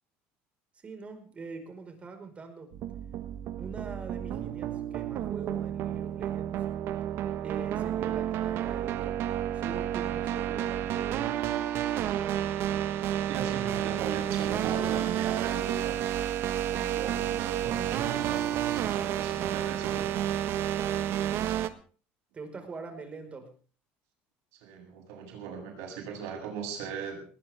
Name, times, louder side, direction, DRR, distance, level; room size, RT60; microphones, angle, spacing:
voice 1, 0.8-2.7 3.6-6.6 7.4-9.2 9.5-11.4 22.3-23.5, right 4 dB, 25° right, 6 dB, 4.9 m, -43 dB
sound 1, 2.7-21.7, right 11 dB, 55° right, 1.4 m, -30 dB
voice 2, 13.3-16.0 16.4-20.3 24.6-27.3, right 6 dB, 80° right, 3 dB, 7.7 m, -38 dB
19.5 x 19.0 x 3.6 m, 0.40 s
cardioid pair, 130°, 5 cm